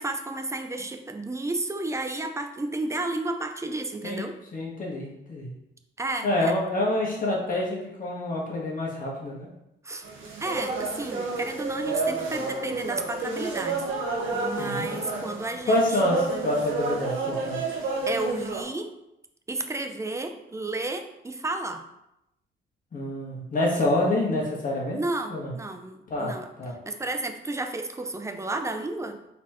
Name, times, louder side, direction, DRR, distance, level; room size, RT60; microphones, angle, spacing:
voice 1, 0.0-4.4 6.0-6.6 9.8-10.1 10.4-13.8 14.3-16.1 17.8-18.9 19.5-21.8 24.9-26.5 26.8-29.2, right 2 dB, 15° right, 6 dB, 0.5 m, -32 dB
voice 2, 4.5-5.5 6.2-9.5 14.6-14.9 15.7-17.6 22.9-25.0 25.3-25.5 26.1-26.7, left 1 dB, 45° left, -3 dB, 1.6 m, -27 dB
sound 1, 10.0-18.6, right 3 dB, 75° right, 1.2 m, -30 dB
4.2 x 4.1 x 3.1 m, 0.86 s
cardioid pair, 90°, 20 cm